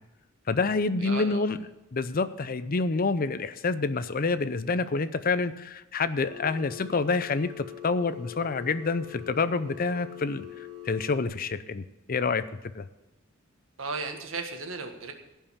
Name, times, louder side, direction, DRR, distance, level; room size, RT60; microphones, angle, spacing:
voice 1, 0.5-1.6 1.9-10.4 10.9-12.4 12.7-12.9, left 4 dB, 45° left, 13 dB, 0.6 m, -27 dB
voice 2, 1.0-1.5 13.8-15.1, right 4 dB, 80° right, 5 dB, 1.7 m, -35 dB
Telephone, 6.2-11.2, left 12 dB, 35° right, 3.3 m, -43 dB
16.0 x 5.6 x 7.1 m, 1.0 s
head